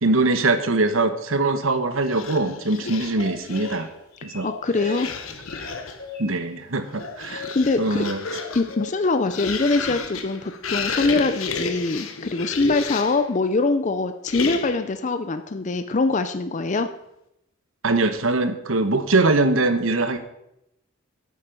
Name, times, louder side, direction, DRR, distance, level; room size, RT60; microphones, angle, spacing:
voice 1, 0.0-3.9 4.2-4.5 6.2-7.5 7.8-8.2 17.8-20.2, right 2 dB, 80° right, 9 dB, 1.1 m, -22 dB
sound 1, 2.0-3.9 4.8-6.1 6.8-13.3 14.3-14.9, left 5 dB, 85° left, 1.1 m, -32 dB
sound 2, 3.2-3.8 4.1-5.1 5.4-6.4 7.0-7.5 8.3-8.9, left 4 dB, 50° left, 3.2 m, -38 dB
voice 2, 4.4-5.1 7.3-8.1 8.5-16.9, left 3 dB, 35° left, 9 dB, 0.5 m, -23 dB
10.0 x 8.4 x 5.3 m, 0.83 s
head